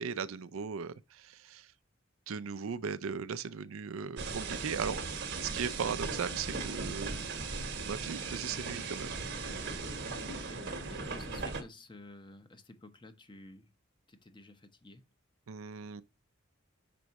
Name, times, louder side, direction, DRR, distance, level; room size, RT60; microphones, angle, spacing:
voice 1, 0.0-1.7 2.3-5.0 5.4-7.3 7.8-9.2 15.5-16.0, right 6 dB, 80° right, 0.5 m, -38 dB
sound 1, 4.2-11.6, right 4 dB, 60° right, 1.1 m, -38 dB
voice 2, 10.1-13.7 14.1-15.0, left 2 dB, 25° left, 0.8 m, -52 dB
6.0 x 4.7 x 4.0 m
head